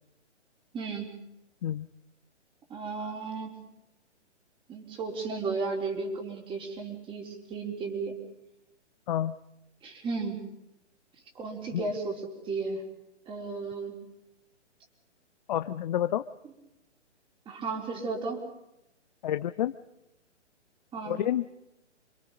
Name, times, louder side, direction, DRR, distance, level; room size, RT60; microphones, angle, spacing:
voice 1, 0.7-1.1 2.7-3.6 4.7-8.2 9.8-10.4 11.4-12.8 13.3-13.9 17.5-18.4 20.9-21.2, right 4 dB, 15° right, 2 dB, 4.1 m, -34 dB
voice 2, 15.5-16.2 19.2-19.7 21.1-21.5, left 11 dB, 40° left, 11 dB, 0.8 m, -29 dB
28.5 x 23.0 x 5.3 m, 0.87 s
hypercardioid pair, 140°, 35 cm